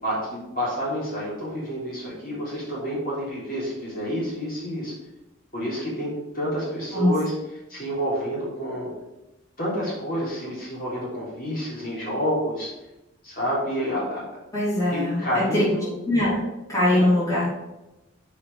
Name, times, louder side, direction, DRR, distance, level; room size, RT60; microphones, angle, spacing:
voice 1, 0.0-4.9 5.5-7.3 7.7-8.9 9.6-12.7 13.2-14.2 14.9-15.9 16.9-17.1, equal, 45° left, -6 dB, 3.6 m, -28 dB
voice 2, 14.5-15.6 16.0-16.4 16.7-17.5, left 1 dB, 15° left, -9 dB, 3.3 m, -22 dB
7.0 x 5.1 x 7.1 m, 0.97 s
head